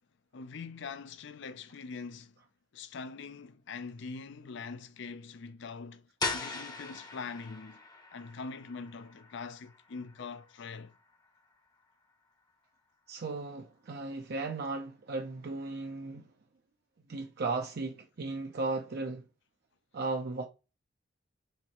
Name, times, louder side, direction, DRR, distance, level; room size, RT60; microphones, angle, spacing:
voice 1, 0.3-2.3 2.7-6.1 6.3-7.8 8.1-10.9, left 4 dB, 65° left, 0.5 m, -43 dB
sound 1, 6.2-11.8, left 3 dB, 20° left, 0.8 m, -41 dB
voice 2, 13.1-16.3 17.1-19.3 19.9-20.5, right 3 dB, 55° right, 0.5 m, -36 dB
4.3 x 3.4 x 2.9 m
head